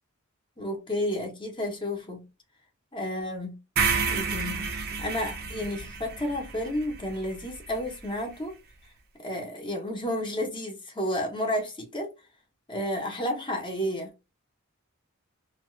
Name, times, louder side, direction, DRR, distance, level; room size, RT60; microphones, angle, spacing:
voice 1, 0.6-2.2 2.9-3.6 4.0-8.5 9.2-12.1 12.7-14.1, left 1 dB, 25° left, 0.8 m, -31 dB
sound 1, 3.8-7.9, right 5 dB, 45° right, 0.5 m, -30 dB
2.7 x 2.3 x 3.1 m
head